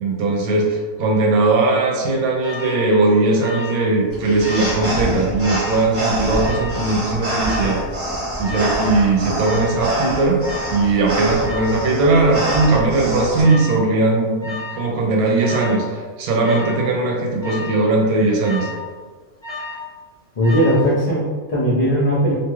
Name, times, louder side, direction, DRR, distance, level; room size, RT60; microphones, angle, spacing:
voice 1, 0.0-7.8 8.4-10.4 10.7-15.8 16.2-18.7, right 3 dB, 85° right, 0 dB, 1.1 m, -18 dB
Alarm, 2.4-2.8 3.4-3.9 4.2-4.8 5.4-5.8 6.4-6.9 7.4-7.9 8.4-8.9 9.4-9.8 10.4-10.8 11.4-11.8 12.4-12.9 13.4-13.9 14.4-14.8 15.4-15.8 16.4-16.9 17.4-17.8 18.4-18.9 19.4-19.9 20.4-20.9, left 2 dB, 20° left, 0.8 m, -32 dB
sound 1, 4.1-13.4, right 1 dB, 15° right, 0.7 m, -26 dB
voice 2, 20.4-22.3, equal, 70° left, -8 dB, 0.3 m, -18 dB
2.9 x 2.3 x 2.9 m, 1.5 s
omnidirectional pair, 1.5 m